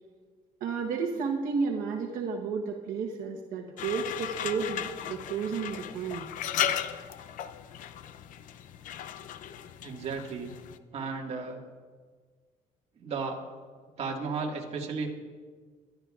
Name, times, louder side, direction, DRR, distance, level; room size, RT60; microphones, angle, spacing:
voice 1, 0.6-6.2, right 5 dB, 80° right, 0 dB, 1.1 m, -32 dB
Radiator - Filling up with water steam noise begin, 3.8-10.8, left 10 dB, 70° left, 0.6 m, -36 dB
voice 2, 9.8-10.5 10.9-11.7 13.0-13.4 14.0-15.1, right 4 dB, 45° right, 0 dB, 1.8 m, -34 dB
22.5 x 12.0 x 2.4 m, 1.5 s
cardioid pair, 130°, 14 cm